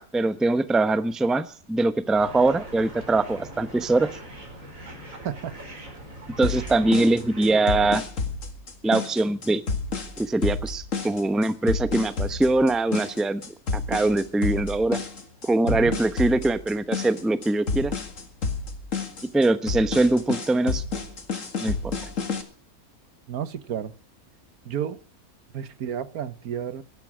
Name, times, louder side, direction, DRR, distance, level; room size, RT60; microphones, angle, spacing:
voice 1, 0.0-4.1 6.4-8.0 8.8-9.6 10.2-13.4 13.7-15.0 15.4-17.9 19.3-20.8 21.6-21.9, right 2 dB, ahead, 0.6 m, -22 dB
sound 1, 2.1-7.6, right 1 dB, 65° right, 5.1 m, -42 dB
voice 2, 5.2-5.5 15.6-16.0 23.3-23.9 24.6-25.0 25.5-26.8, right 9 dB, 85° right, 1.5 m, -31 dB
sound 2, 6.4-22.4, left 4 dB, 60° left, 2.4 m, -30 dB
17.0 x 12.0 x 6.2 m
omnidirectional pair, 1.5 m